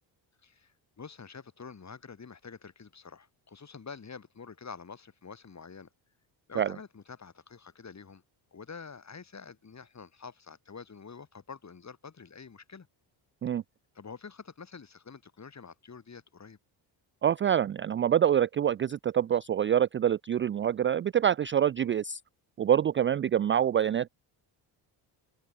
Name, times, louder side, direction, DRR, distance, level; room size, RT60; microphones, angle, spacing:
voice 1, 0.4-5.9 6.5-8.2 8.5-12.9 13.9-16.6, left 5 dB, 35° left, 3.9 m, -47 dB
voice 2, 17.2-22.2 22.6-24.1, right 9 dB, 30° right, 0.3 m, -26 dB
open air
supercardioid pair, 75°, 49 cm